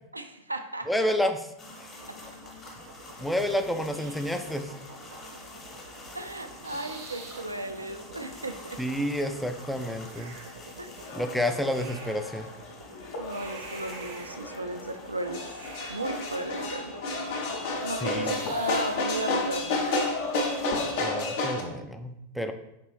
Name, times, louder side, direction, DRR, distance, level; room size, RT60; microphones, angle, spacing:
voice 1, 0.1-1.1 2.1-2.2 6.1-8.8 10.8-11.1 11.4-11.5 13.2-15.5 15.9-17.0 17.8-19.8, right 1 dB, 80° right, 7 dB, 0.3 m, -35 dB
voice 2, 0.9-1.4 3.2-4.7 8.8-10.4 11.1-12.5 18.0-18.4 21.0-22.5, left 1 dB, ahead, 6 dB, 0.3 m, -29 dB
sound 1, 1.6-20.7, left 1 dB, 25° left, 1.0 m, -48 dB
sound 2, 2.0-20.7, right 3 dB, 55° right, 0.7 m, -47 dB
sound 3, 11.0-21.6, left 2 dB, 50° left, 0.7 m, -32 dB
4.4 x 3.2 x 3.0 m, 0.85 s
figure-of-eight pair, 90°, 0 cm